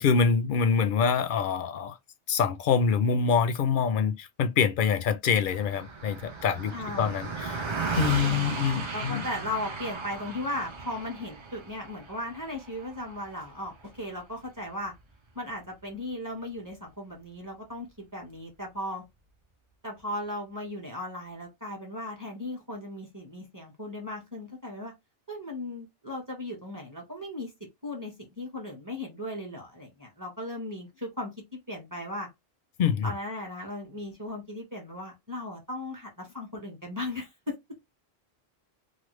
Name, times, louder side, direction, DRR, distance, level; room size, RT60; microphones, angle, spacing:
voice 1, 0.0-2.0 2.3-7.6 7.9-9.2 32.8-33.1, left 6 dB, 60° left, 0.6 m, -25 dB
Car passing by, 5.5-15.1, right 4 dB, 35° right, 0.5 m, -36 dB
voice 2, 6.7-7.1 8.2-8.6 8.9-14.9 15.3-19.0 19.8-24.9 25.3-27.5 27.8-31.3 31.7-32.3 33.0-37.6, left 1 dB, 20° right, 1.0 m, -37 dB
3.3 x 2.1 x 3.1 m
omnidirectional pair, 1.0 m